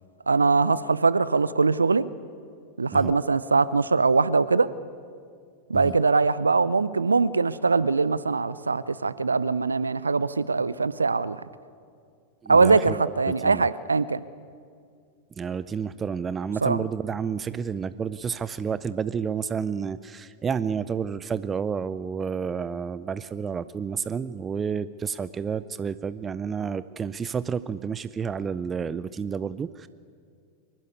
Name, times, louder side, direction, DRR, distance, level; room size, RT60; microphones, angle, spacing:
voice 1, 0.3-2.1 2.8-4.7 5.7-11.4 12.5-14.2 16.6-16.8, right 4 dB, 75° right, 17 dB, 0.5 m, -22 dB
voice 2, 12.4-13.6 15.4-29.9, right 6 dB, 20° right, 16 dB, 0.5 m, -30 dB
23.5 x 12.0 x 9.8 m, 2.2 s
figure-of-eight pair, 90°, 0 cm